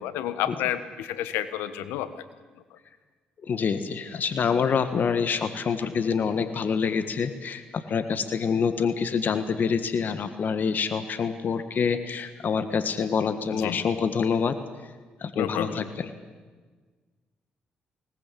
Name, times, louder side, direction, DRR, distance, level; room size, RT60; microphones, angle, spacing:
voice 1, 0.0-2.2 2.7-2.8 13.5-13.8 15.3-15.9, left 11 dB, 85° left, 13 dB, 1.3 m, -30 dB
voice 2, 3.4-14.6 14.8-14.9 15.2-16.1, left 6 dB, 55° left, 10 dB, 1.6 m, -26 dB
21.5 x 19.0 x 8.6 m, 1.4 s
supercardioid pair, 55°, 4 cm